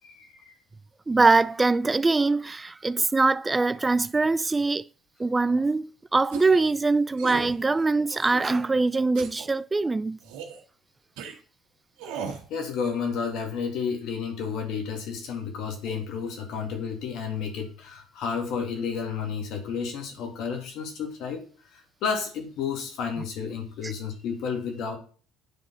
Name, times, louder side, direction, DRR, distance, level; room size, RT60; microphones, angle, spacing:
voice 1, 0.0-0.5 12.3-21.4 21.7-25.0, left 6 dB, 70° left, 2.3 m, -31 dB
voice 2, 1.1-4.8 5.2-10.2 23.8-23.9, right 3 dB, 20° right, 0.3 m, -23 dB
sound 1, 6.3-6.7 7.2-7.6 8.1-8.6 9.2-9.5 10.2-10.6 11.2-11.3 12.0-12.5, right 6 dB, 80° right, 1.6 m, -37 dB
9.2 x 4.0 x 6.3 m
supercardioid pair, 80°, 0 cm